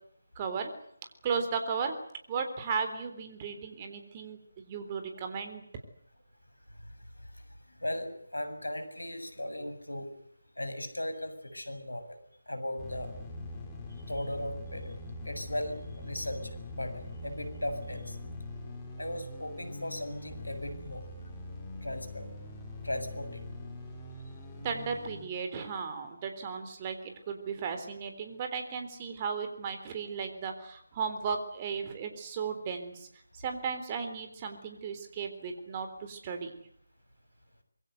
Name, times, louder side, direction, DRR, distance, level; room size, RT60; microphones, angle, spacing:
voice 1, 0.4-0.7 1.2-2.0 2.3-5.6 24.6-33.1 33.4-36.5, right 5 dB, 20° right, 6 dB, 3.7 m, -35 dB
voice 2, 7.8-10.1 10.6-12.2 12.5-13.1 14.1-14.9 15.3-18.2 19.0-21.0 21.8-22.3 22.8-23.4, left 1 dB, 85° left, 10 dB, 7.2 m, -37 dB
sound 1, 12.8-25.3, left 1 dB, 10° left, 5.7 m, -43 dB
25.5 x 23.0 x 8.1 m, 0.68 s
figure-of-eight pair, 160°, 0 cm